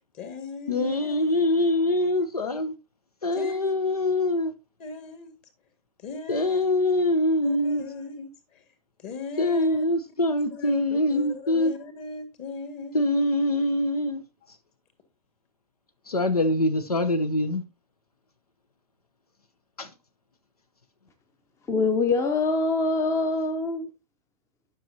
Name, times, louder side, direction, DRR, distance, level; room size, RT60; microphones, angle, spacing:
voice 1, 0.1-1.5 3.3-3.7 4.8-5.3 6.0-6.8 7.4-8.6 9.0-9.8 10.5-13.2, left 3 dB, 35° left, 1.9 m, -39 dB
voice 2, 0.7-2.7 3.2-4.5 6.3-7.8 9.4-11.7 12.9-14.2 16.1-17.6 19.8-19.9, left 1 dB, 85° left, 0.7 m, -24 dB
voice 3, 21.7-23.9, left 3 dB, 15° left, 0.7 m, -24 dB
10.0 x 6.1 x 2.7 m
figure-of-eight pair, 100°, 19 cm